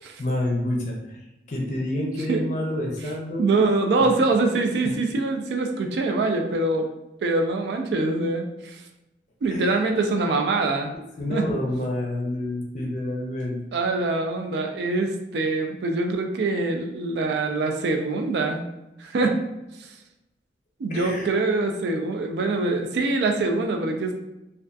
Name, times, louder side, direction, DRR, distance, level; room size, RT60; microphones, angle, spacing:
voice 1, 0.2-1.2 1.5-3.5 4.0-4.1 9.5-9.8 11.2-13.6 20.9-21.3, left 1 dB, 45° left, -1 dB, 0.5 m, -28 dB
voice 2, 3.4-6.9 7.2-8.8 9.4-10.9 11.3-11.5 13.7-18.6 19.0-19.4 19.8-19.9 20.8-24.2, right 3 dB, 75° right, 4 dB, 0.3 m, -24 dB
2.6 x 2.3 x 2.2 m, 0.93 s
head